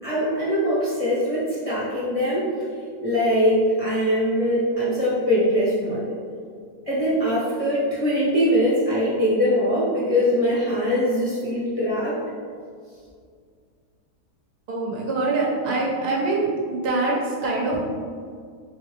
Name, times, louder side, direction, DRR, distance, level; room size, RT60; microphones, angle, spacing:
voice 1, 0.0-2.5 3.0-6.2 6.9-12.2, equal, 30° left, -9 dB, 0.7 m, -22 dB
voice 2, 14.7-17.8, right 3 dB, 85° right, -3 dB, 1.4 m, -24 dB
3.9 x 3.6 x 3.0 m, 2.1 s
omnidirectional pair, 1.6 m